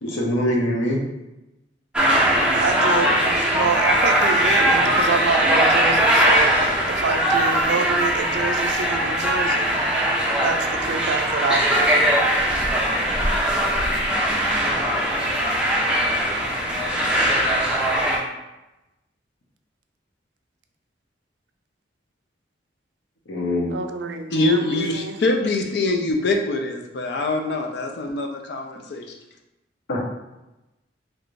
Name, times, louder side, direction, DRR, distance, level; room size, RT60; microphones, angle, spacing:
voice 1, 0.0-1.0 23.3-23.8 29.9-30.0, left 1 dB, 85° left, -2 dB, 0.8 m, -23 dB
sound 1, 1.9-18.2, right 1 dB, 5° right, 0.5 m, -20 dB
voice 2, 2.6-6.5 6.9-9.8 10.4-12.0 12.4-12.5 15.4-15.9 23.7-25.2, right 5 dB, 65° right, 5 dB, 0.4 m, -27 dB
voice 3, 24.3-29.2, left 2 dB, 60° left, 3 dB, 0.4 m, -24 dB
3.2 x 2.5 x 3.1 m, 0.98 s
head